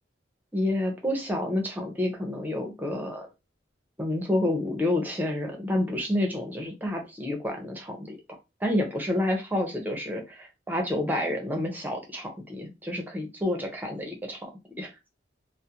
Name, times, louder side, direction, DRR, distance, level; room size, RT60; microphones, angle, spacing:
voice 1, 0.5-3.3 4.0-8.2 8.6-14.5 14.8-14.9, left 1 dB, 10° right, 2 dB, 0.5 m, -29 dB
2.4 x 2.0 x 2.8 m, 0.24 s
head